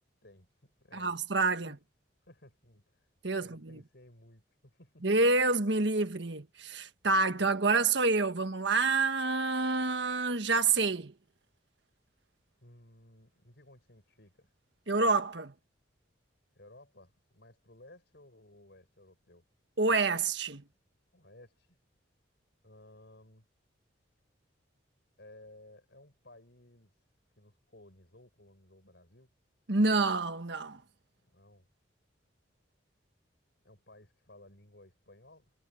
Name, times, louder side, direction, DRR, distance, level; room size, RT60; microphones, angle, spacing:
voice 1, 0.2-1.2 1.6-1.7 2.2-3.1 3.4-5.1 12.6-14.5 16.5-19.4 21.1-21.8 22.6-23.4 25.2-27.0 27.4-29.3 31.2-31.7 33.6-35.5, left 1 dB, 60° left, 6.8 m, -57 dB
voice 2, 0.9-1.8 3.2-3.8 5.0-11.1 14.9-15.5 19.8-20.6 29.7-30.8, right 3 dB, 65° right, 1.6 m, -28 dB
head